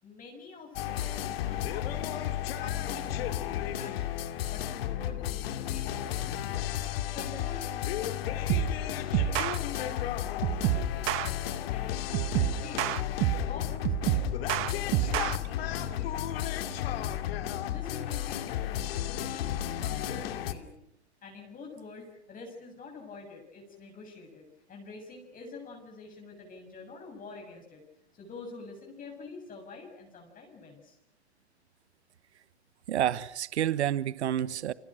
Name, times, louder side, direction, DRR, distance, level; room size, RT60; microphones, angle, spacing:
voice 1, 0.0-1.9 2.2-4.2 4.5-6.7 6.9-12.9 13.3-20.7 21.2-27.8 28.1-31.0, left 4 dB, 25° left, 7.0 m, -47 dB
sound 1, 0.7-20.5, left 12 dB, 60° left, 2.6 m, -33 dB
sound 2, 8.5-8.8 9.1-9.6 10.4-11.3 12.1-13.5 13.8-15.4, right 16 dB, 40° right, 1.5 m, -28 dB
voice 2, 32.9-34.7, right 11 dB, 75° right, 1.1 m, -29 dB
29.5 x 25.5 x 6.4 m
hypercardioid pair, 110°, 34 cm